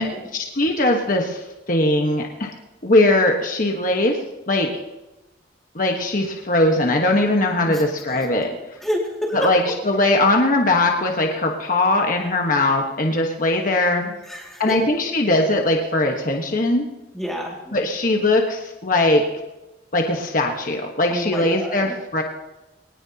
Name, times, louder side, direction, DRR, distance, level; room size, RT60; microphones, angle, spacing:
voice 1, 0.0-2.5 2.8-4.2 4.5-4.8 5.7-8.5 9.3-14.1 14.6-16.9 17.7-19.3 19.9-22.2, left 2 dB, 45° left, 1 dB, 1.3 m, -20 dB
voice 2, 8.8-9.5 14.0-14.8 17.1-17.7 21.1-21.9, equal, ahead, -2 dB, 2.2 m, -28 dB
21.5 x 19.0 x 2.9 m, 1.0 s
head